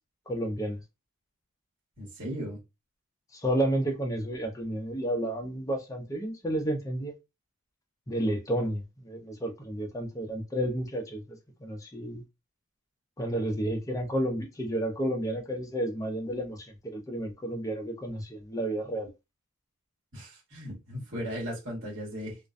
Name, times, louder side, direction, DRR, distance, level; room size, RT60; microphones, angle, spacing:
voice 1, 0.3-0.8 3.3-7.1 8.1-12.2 13.2-19.1, right 1 dB, 15° left, 0.5 m, -31 dB
voice 2, 2.0-2.6 20.1-22.4, equal, 60° right, 1.2 m, -37 dB
2.4 x 2.1 x 2.4 m
head